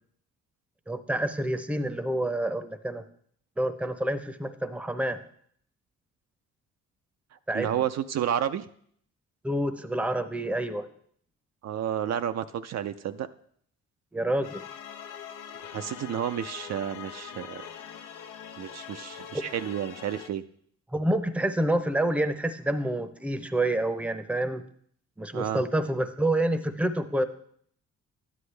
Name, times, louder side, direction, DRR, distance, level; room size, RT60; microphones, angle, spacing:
voice 1, 0.9-3.0 3.6-5.2 7.5-7.9 9.4-10.9 14.1-14.6 19.3-19.4 20.9-24.6 25.2-27.2, right 1 dB, 5° right, 10 dB, 0.7 m, -28 dB
voice 2, 7.5-8.7 11.6-13.3 15.7-17.6 18.6-20.4 25.3-25.6, right 10 dB, 60° right, 9 dB, 0.5 m, -31 dB
sound 1, 14.4-20.3, left 8 dB, 90° left, 0.9 m, -43 dB
12.5 x 9.7 x 3.3 m, 0.63 s
cardioid pair, 90°, 30 cm